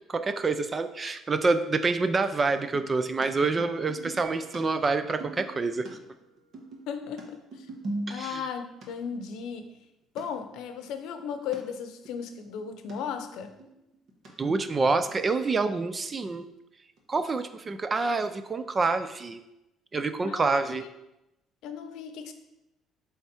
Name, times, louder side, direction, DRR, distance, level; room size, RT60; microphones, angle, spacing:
voice 1, 0.1-6.0 8.1-8.5 14.4-16.4 17.1-19.4 19.9-20.9, right 3 dB, 20° right, 10 dB, 0.4 m, -27 dB
sound 1, 2.5-2.9 3.2-3.3 3.5-5.9 6.2-8.5 8.8-8.9 9.3-9.4 9.8-9.9 10.2-10.3 10.5-11.6 12.0-12.1 12.4-12.9 13.3-14.3 14.6-15.3 15.6-15.9 16.2-16.3 17.0-17.1, right 1 dB, 45° right, 1.3 m, -40 dB
sound 2, 4.2-7.1, right 6 dB, 75° right, 1.0 m, -52 dB
voice 2, 6.9-7.7 8.1-9.8 10.1-13.5 20.2-20.9 21.6-22.3, left 7 dB, 75° left, 8 dB, 0.7 m, -36 dB
7.7 x 3.5 x 4.3 m, 0.90 s
cardioid pair, 150°, 0 cm